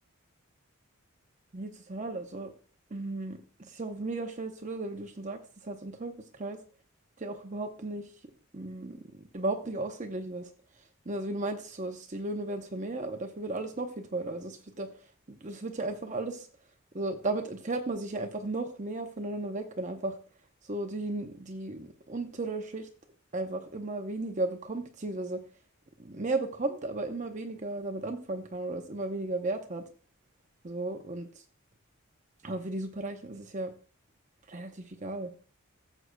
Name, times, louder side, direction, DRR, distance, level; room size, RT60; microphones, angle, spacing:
voice 1, 1.5-2.5 2.9-6.6 7.2-8.1 8.5-10.5 11.1-14.9 15.3-16.5 16.9-20.2 20.6-22.9 23.3-25.4 26.0-29.8 30.6-31.4 32.4-33.7 34.5-35.3, right 2 dB, 35° right, 5 dB, 0.7 m, -35 dB
14.0 x 7.6 x 2.2 m, 0.40 s
head